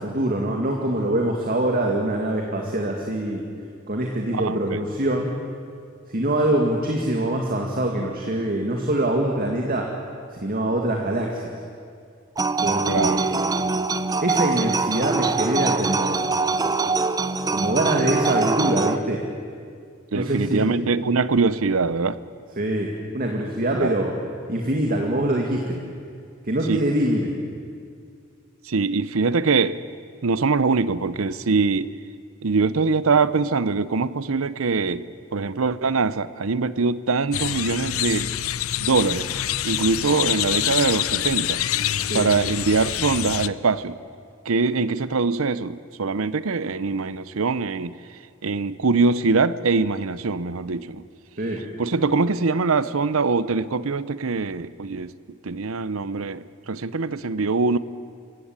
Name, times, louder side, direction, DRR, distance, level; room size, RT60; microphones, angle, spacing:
voice 1, 0.0-3.4 3.9-5.4 6.1-9.9 10.3-11.5 12.6-13.5 14.2-16.3 17.5-19.2 20.1-20.7 22.6-24.2 24.5-25.8 26.4-27.3 42.1-42.3 51.4-51.6, right 1 dB, 45° right, 1 dB, 2.1 m, -24 dB
voice 2, 4.3-4.8 12.9-13.2 20.1-22.2 23.7-23.9 26.7-26.8 28.7-29.8 30.2-31.9 32.4-35.0 35.3-38.3 38.8-39.3 39.6-41.6 42.1-44.0 44.5-48.0 48.4-51.0 51.8-55.1 55.4-57.8, right 4 dB, 75° right, 16 dB, 0.7 m, -23 dB
sound 1, 12.4-19.0, right 3 dB, 15° right, 0.6 m, -23 dB
sound 2, 37.3-43.5, left 12 dB, 80° left, 0.6 m, -26 dB
26.0 x 16.0 x 8.9 m, 2.2 s
head